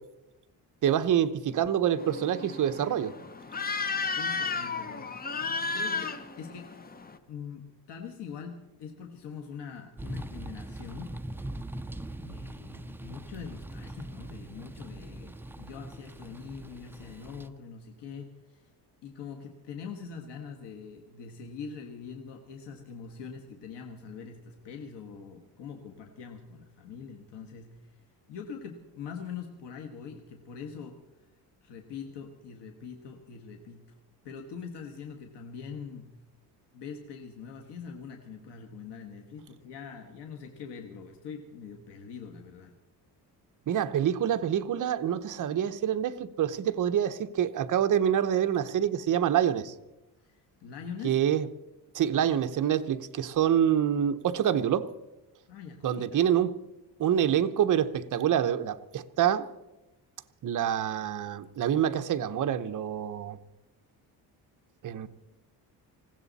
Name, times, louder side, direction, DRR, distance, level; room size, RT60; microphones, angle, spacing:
voice 1, 0.8-3.1 43.7-49.7 51.0-51.5 51.9-54.9 55.8-56.5 57.0-59.5 60.4-63.4 64.8-65.1, right 9 dB, 50° right, 9 dB, 0.9 m, -26 dB
sound 1, 2.0-7.2, left 4 dB, 20° left, 0.8 m, -34 dB
voice 2, 4.2-6.9 7.3-11.2 12.2-18.7 19.0-27.9 28.3-31.0 31.6-33.9 34.2-36.1 36.7-42.7 50.2-51.2 55.5-56.0, left 6 dB, 85° left, 3 dB, 1.7 m, -43 dB
sound 2, 10.0-17.5, right 1 dB, 5° right, 0.4 m, -41 dB
20.0 x 16.0 x 4.1 m, 1.0 s
cardioid pair, 140°, 41 cm